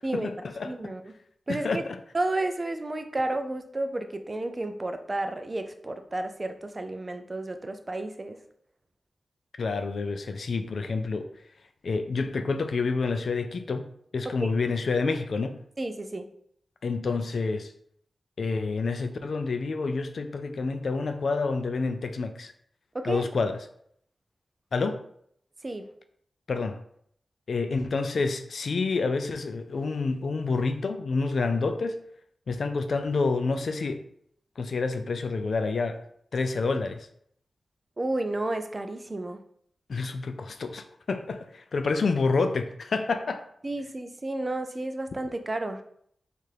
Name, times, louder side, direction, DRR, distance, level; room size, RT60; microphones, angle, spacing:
voice 1, 0.1-0.7 1.5-1.8 9.6-11.3 11.8-13.8 14.1-15.6 16.8-17.7 18.4-22.5 23.1-23.6 24.7-25.0 26.5-26.8 27.5-32.0 32.5-34.0 34.6-36.0 36.3-37.1 39.9-43.4, left 4 dB, 65° left, 8 dB, 0.3 m, -28 dB
voice 2, 0.6-1.1 1.5-1.9 2.1-8.4 14.4-14.5 15.8-16.3 22.9-23.3 25.6-25.8 38.0-39.4 43.6-45.8, right 2 dB, 25° right, 7 dB, 0.4 m, -31 dB
3.3 x 2.4 x 4.4 m, 0.67 s
wide cardioid pair, 115°, 0 cm